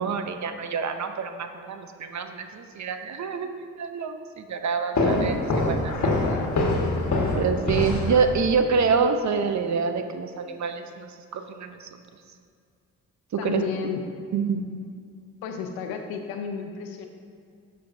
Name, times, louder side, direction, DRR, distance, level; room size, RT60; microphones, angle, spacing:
voice 1, 0.0-5.9 7.4-12.0 13.3-13.6 14.3-14.7, right 5 dB, 50° right, 7 dB, 0.8 m, -26 dB
sound 1, 4.9-8.6, left 2 dB, 50° left, 1.5 m, -25 dB
voice 2, 6.2-6.9 13.4-14.0 15.4-17.1, left 7 dB, 85° left, 5 dB, 0.8 m, -32 dB
12.0 x 5.5 x 2.7 m, 2.2 s
hypercardioid pair, 45°, 36 cm